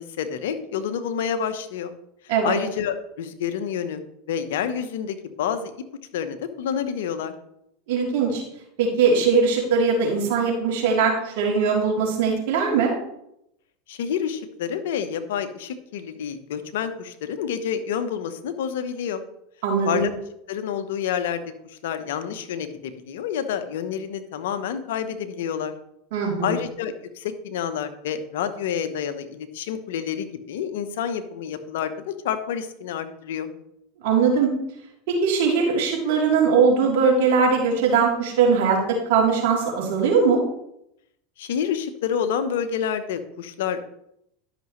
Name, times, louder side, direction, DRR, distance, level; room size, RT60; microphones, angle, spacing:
voice 1, 0.0-1.9 2.4-4.0 4.3-5.7 6.1-7.3 13.9-19.2 19.8-20.1 20.5-25.7 26.4-33.5 41.4-43.9, left 8 dB, 75° left, 9 dB, 0.9 m, -28 dB
voice 2, 7.9-8.4 8.8-12.9 19.6-20.0 26.1-26.6 34.0-34.5 35.1-40.4, right 5 dB, 65° right, -2 dB, 3.2 m, -20 dB
12.0 x 6.1 x 3.2 m, 0.78 s
hypercardioid pair, 95°, 0 cm